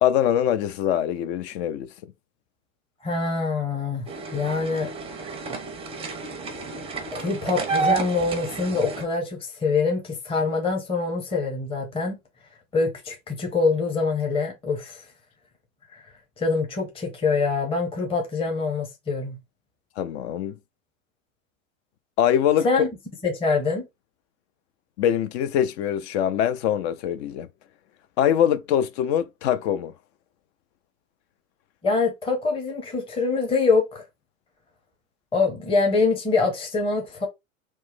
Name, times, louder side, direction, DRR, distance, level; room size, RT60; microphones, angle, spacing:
voice 1, 0.0-1.9 20.0-20.5 22.2-22.7 25.0-27.5 28.2-29.9, left 10 dB, 55° left, 0.5 m, -23 dB
voice 2, 3.0-4.0 4.3-4.9 7.1-12.2 12.7-15.0 15.9-16.0 16.4-19.4 22.6-22.9 23.2-23.9 31.8-34.0 35.3-37.3, left 4 dB, 15° left, 0.8 m, -24 dB
sound 1, 4.1-9.0, right 4 dB, 15° right, 0.5 m, -30 dB
3.1 x 2.1 x 3.2 m
hypercardioid pair, 100°, 40 cm